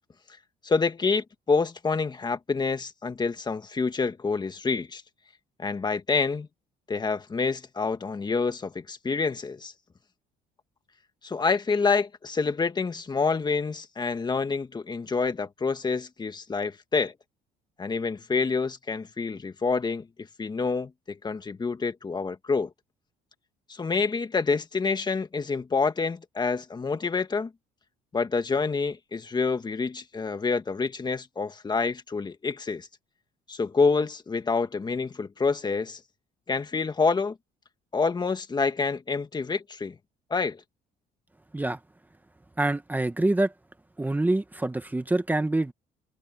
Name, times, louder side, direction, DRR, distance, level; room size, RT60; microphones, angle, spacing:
voice 1, 0.6-5.0 5.6-6.5 6.9-9.7 11.2-17.1 17.8-20.1 20.4-22.7 23.7-27.5 28.1-32.9 33.5-36.0 36.5-37.3 37.9-40.0 40.3-40.6, left 4 dB, 25° left, 1.8 m, -27 dB
voice 2, 42.6-43.5 44.0-45.7, right 2 dB, 10° right, 1.3 m, -25 dB
cardioid pair, 110°, 17 cm